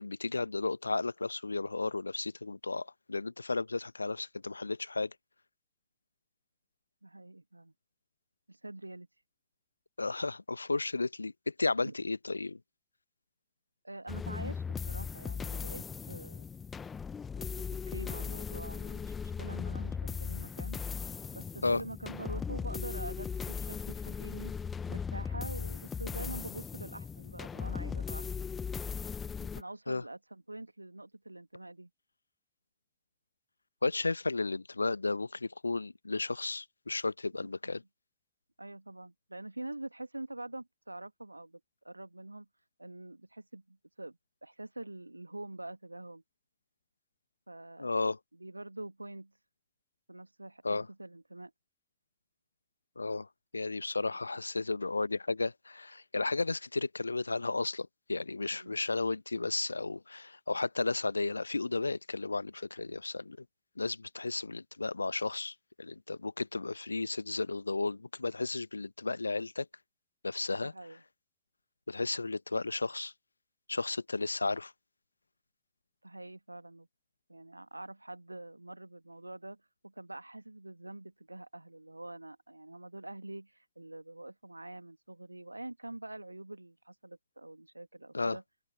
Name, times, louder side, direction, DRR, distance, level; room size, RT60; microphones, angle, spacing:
voice 1, 0.0-5.1 10.0-12.6 21.6-21.8 29.9-30.0 33.8-37.8 47.8-48.2 50.6-50.9 53.0-53.3 53.5-63.4 63.8-69.7 70.2-70.7 71.9-73.1 73.7-74.7 88.1-88.4, left 3 dB, 80° left, 0.9 m, -33 dB
voice 2, 7.0-7.7 8.5-9.1 11.8-11.9 13.8-16.4 17.4-17.5 17.9-20.8 21.3-24.5 24.9-28.3 29.4-31.9 37.3-37.8 38.6-42.5 42.8-46.2 47.5-47.9 48.3-49.3 50.1-51.5 58.5-58.8 70.6-71.0 76.0-76.9 77.3-88.4, right 2 dB, 85° right, 1.7 m, -45 dB
sound 1, 14.1-29.6, left 6 dB, 20° left, 0.9 m, -38 dB
open air
figure-of-eight pair, 90°, 0 cm